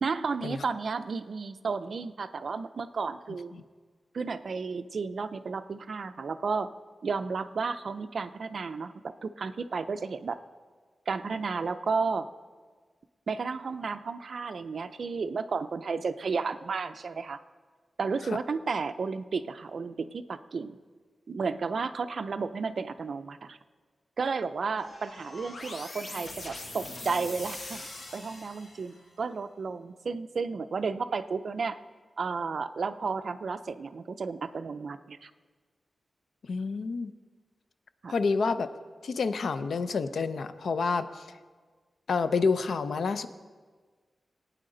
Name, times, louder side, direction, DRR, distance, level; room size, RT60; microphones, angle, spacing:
voice 1, 0.0-3.5 4.1-6.7 7.0-10.4 11.1-12.3 13.3-17.4 18.0-20.8 21.3-23.6 24.2-31.8 32.2-35.3 38.0-38.1, right 4 dB, 55° right, 11 dB, 0.5 m, -33 dB
sound 1, 24.8-29.1, left 2 dB, 60° left, 1.7 m, -42 dB
voice 2, 36.4-37.1 38.1-38.7 39.0-41.3 42.1-43.3, left 4 dB, 75° left, 11 dB, 0.5 m, -28 dB
19.0 x 9.1 x 3.9 m, 1.5 s
wide cardioid pair, 160°, 0 cm